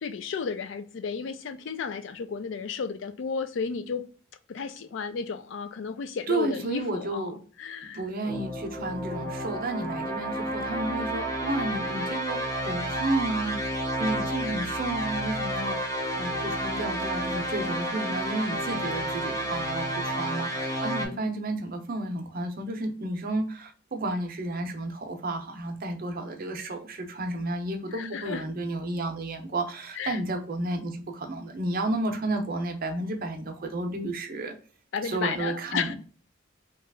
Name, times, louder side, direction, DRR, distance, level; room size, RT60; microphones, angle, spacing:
voice 1, 0.0-4.1 4.5-8.0 21.0-21.6 27.9-28.4 30.0-30.2 34.9-36.0, left 5 dB, 65° left, 0.4 m, -33 dB
voice 2, 6.3-7.3 7.9-34.5 35.0-36.0, right 2 dB, 45° right, 0.6 m, -32 dB
sound 1, 8.2-21.1, right 1 dB, 15° left, 0.6 m, -31 dB
2.9 x 2.3 x 3.4 m
head